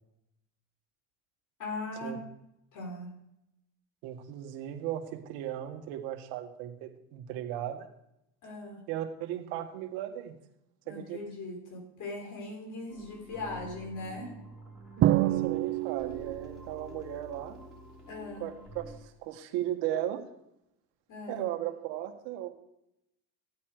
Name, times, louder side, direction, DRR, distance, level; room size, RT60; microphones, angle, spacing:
voice 1, 1.6-2.2 2.7-3.1 8.4-8.8 10.8-14.3 18.1-18.5 21.1-21.5, left 2 dB, 50° left, 0 dB, 5.0 m, -39 dB
voice 2, 4.0-7.9 8.9-10.3 10.9-11.2 15.0-17.6 18.4-20.2 21.3-22.5, right 12 dB, 75° right, 6 dB, 1.9 m, -36 dB
sound 1, 12.9-19.0, equal, ahead, 4.3 m, -49 dB
Drum, 15.0-16.7, right 14 dB, 35° right, 0.4 m, -27 dB
14.5 x 8.6 x 5.0 m, 0.81 s
supercardioid pair, 110°, 39 cm